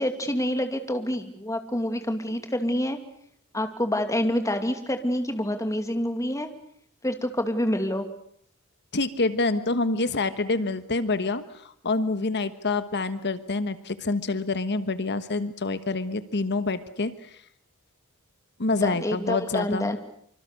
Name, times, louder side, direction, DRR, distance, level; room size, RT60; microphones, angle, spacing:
voice 1, 0.0-3.0 3.5-6.5 7.0-8.1 18.8-20.0, left 1 dB, 15° left, 6 dB, 2.5 m, -27 dB
voice 2, 8.9-17.1 18.6-19.9, left 3 dB, 50° left, 12 dB, 1.3 m, -27 dB
25.5 x 25.5 x 6.7 m, 0.65 s
head